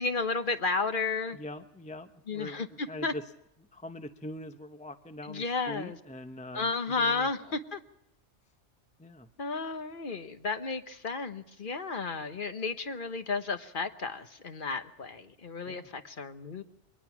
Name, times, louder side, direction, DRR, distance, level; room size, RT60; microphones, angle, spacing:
voice 1, 0.0-1.4 2.3-3.1 5.3-5.9 6.5-7.8 9.4-16.6, left 4 dB, 50° left, 9 dB, 1.2 m, -33 dB
voice 2, 1.3-3.2 3.7-7.6 9.0-9.3 15.6-15.9, left 1 dB, 10° left, 8 dB, 0.6 m, -43 dB
23.0 x 19.0 x 6.0 m, 0.81 s
omnidirectional pair, 1.2 m